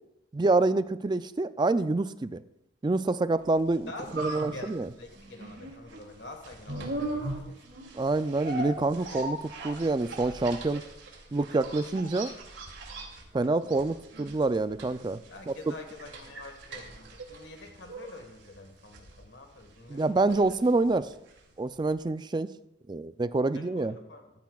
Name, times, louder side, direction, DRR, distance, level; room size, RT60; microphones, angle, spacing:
voice 1, 0.3-2.4 2.8-4.9 8.0-10.8 11.3-12.3 13.3-15.2 15.5-15.7 19.9-21.1 21.6-22.5 22.9-24.0, right 2 dB, 25° right, 13 dB, 0.3 m, -27 dB
sound 1, 3.6-21.6 21.9-22.0, right 2 dB, 75° right, 2.6 m, -40 dB
voice 2, 3.9-7.6 15.3-20.1 23.5-24.3, left 2 dB, 65° left, 5 dB, 1.5 m, -46 dB
14.5 x 14.0 x 2.4 m, 0.86 s
head